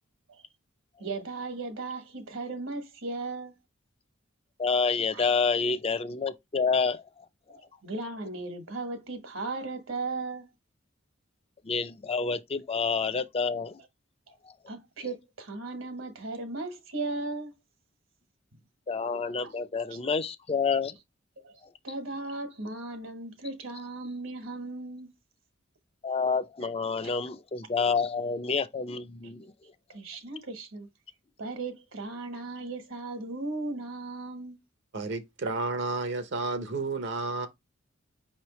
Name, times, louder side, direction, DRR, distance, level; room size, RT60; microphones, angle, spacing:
voice 1, 1.0-3.5 5.1-5.2 7.5-10.5 14.7-17.5 19.4-19.5 19.9-20.0 21.4-21.6 21.8-25.1 27.0-27.1 29.9-30.9 31.4-34.6, right 3 dB, 75° right, 1.3 m, -36 dB
voice 2, 4.6-7.0 11.6-13.8 18.9-21.0 26.0-29.5, left 5 dB, 30° left, 0.4 m, -28 dB
voice 3, 34.9-37.5, right 3 dB, 60° right, 0.7 m, -31 dB
5.4 x 3.2 x 3.0 m
head